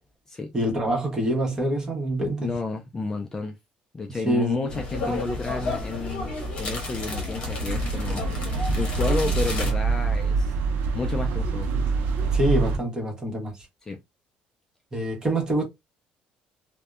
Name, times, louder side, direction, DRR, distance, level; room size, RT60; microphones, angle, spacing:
voice 1, 0.5-2.5 4.2-4.6 12.3-13.6 14.9-15.6, right 1 dB, 20° right, 1.0 m, -25 dB
voice 2, 2.4-3.6 3.9-8.3 8.8-10.5 10.9-11.7 13.8-14.0, left 3 dB, 20° left, 0.3 m, -31 dB
sound 1, 4.7-9.7, left 2 dB, 40° left, 1.0 m, -30 dB
sound 2, 7.7-12.8, right 4 dB, 80° right, 0.5 m, -25 dB
2.6 x 2.1 x 2.3 m
cardioid pair, 145°, 3 cm